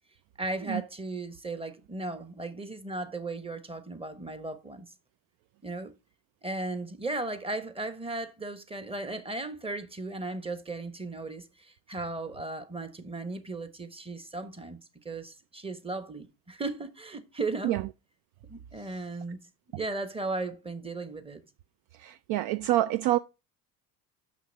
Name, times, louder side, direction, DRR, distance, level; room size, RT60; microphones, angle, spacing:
voice 1, 0.4-4.9 5.6-5.9 6.4-17.8 18.5-19.4 19.7-21.4, right 2 dB, 10° right, 1.2 m, -36 dB
voice 2, 22.0-23.2, right 15 dB, 55° right, 0.5 m, -26 dB
6.4 x 6.0 x 5.2 m
hypercardioid pair, 60°, 45 cm